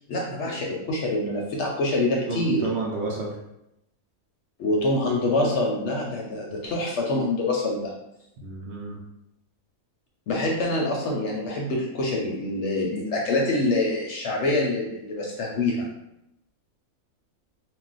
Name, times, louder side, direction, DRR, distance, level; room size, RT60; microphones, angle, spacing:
voice 1, 0.1-2.7 4.6-7.9 10.3-15.9, left 2 dB, 65° left, -2 dB, 0.8 m, -25 dB
voice 2, 2.3-3.4 8.4-9.0, right 3 dB, 65° right, -2 dB, 0.7 m, -31 dB
2.3 x 2.1 x 3.9 m, 0.85 s
omnidirectional pair, 1.5 m